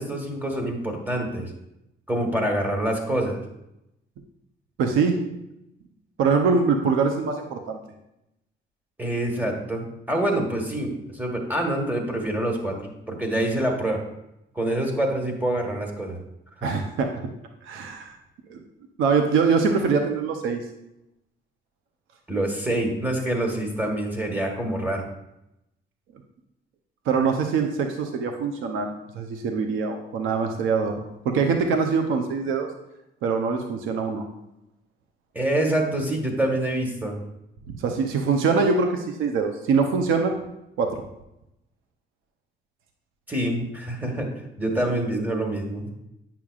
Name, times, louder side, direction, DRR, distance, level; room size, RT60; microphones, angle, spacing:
voice 1, 0.0-1.5 2.1-3.4 9.0-14.0 14.5-16.2 16.6-16.7 22.3-25.1 35.3-37.2 43.3-44.3 44.6-45.9, right 1 dB, 10° right, 2 dB, 1.4 m, -26 dB
voice 2, 4.8-5.2 6.2-7.8 16.6-17.1 17.6-18.2 18.5-18.6 19.0-20.6 27.1-31.0 31.2-32.7 33.2-34.2 37.7-40.4 40.8-41.0, right 5 dB, 90° right, 4 dB, 0.7 m, -23 dB
8.8 x 5.8 x 2.4 m, 0.86 s
cardioid pair, 90°, 20 cm